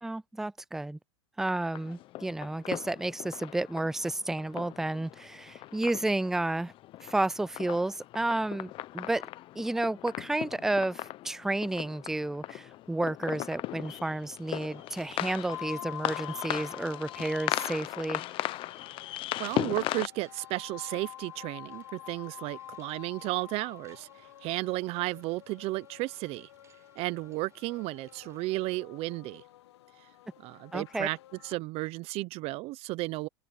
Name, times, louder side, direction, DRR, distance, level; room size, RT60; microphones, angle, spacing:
voice 1, 0.0-1.0 1.4-6.7 7.0-9.2 9.6-18.2 30.7-31.1, right 2 dB, 5° right, 0.4 m, -31 dB
sound 1, 1.7-20.1, left 15 dB, 40° left, 0.8 m, -38 dB
sound 2, 14.2-28.7, right 6 dB, 20° right, 5.5 m, -65 dB
sound 3, 15.5-31.6, left 13 dB, 80° left, 1.3 m, -48 dB
voice 2, 19.4-26.5 27.0-29.4 30.4-31.2 31.4-33.3, right 20 dB, 45° right, 0.8 m, -34 dB
open air
supercardioid pair, 125°, 14 cm